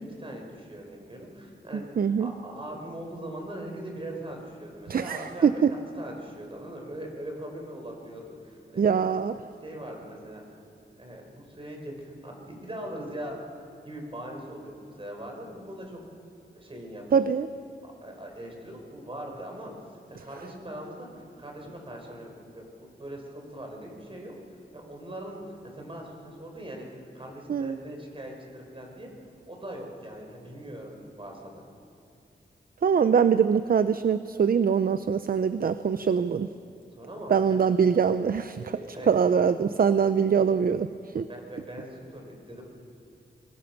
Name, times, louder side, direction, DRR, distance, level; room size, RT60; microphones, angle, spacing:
voice 1, 0.2-1.8 2.2-5.5 6.0-8.9 9.6-10.4 11.0-13.4 13.8-16.0 16.5-17.2 17.8-19.7 20.1-24.3 24.7-29.1 29.5-31.6 36.9-37.6 38.8-39.1 41.3-42.6, right 1 dB, 30° right, 1 dB, 4.8 m, -41 dB
voice 2, 2.0-2.3 4.9-5.7 8.8-9.3 17.1-17.5 27.5-27.8 32.8-36.5 37.3-38.8 39.1-41.3, right 7 dB, 55° right, 12 dB, 0.6 m, -23 dB
23.5 x 20.5 x 5.9 m, 2.7 s
wide cardioid pair, 80°, 18 cm